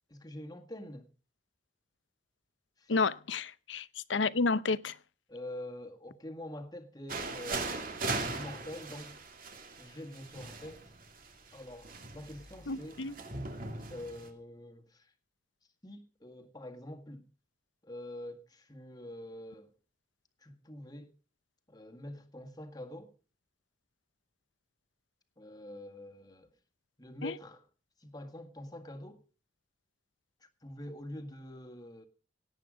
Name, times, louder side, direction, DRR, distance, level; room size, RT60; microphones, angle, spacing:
voice 1, 0.1-1.1 2.8-2.9 5.3-9.2 9.8-10.9 11.5-13.0 13.9-15.1 15.8-17.3 17.8-19.7 20.4-21.1 21.7-23.1 25.4-26.5 27.0-27.6 28.0-29.2 30.4-32.1, left 1 dB, 20° left, 1.8 m, -46 dB
voice 2, 2.9-5.0 12.7-13.1 27.2-27.3, left 4 dB, 90° left, 0.8 m, -31 dB
sound 1, 7.1-14.3, right 3 dB, 50° right, 2.5 m, -39 dB
18.0 x 9.0 x 5.1 m
head